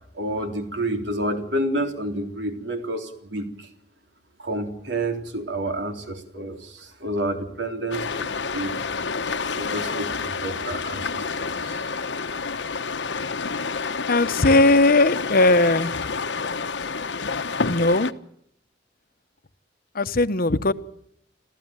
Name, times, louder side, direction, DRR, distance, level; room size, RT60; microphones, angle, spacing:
voice 1, 0.2-3.5 4.4-8.7 9.6-11.8, right 1 dB, 75° right, 3.7 m, -29 dB
sound 1, 7.9-18.1, left 4 dB, 75° left, 1.1 m, -29 dB
voice 2, 14.1-16.0 17.7-18.1 19.9-20.7, left 2 dB, 55° left, 1.0 m, -18 dB
27.0 x 15.5 x 9.0 m
head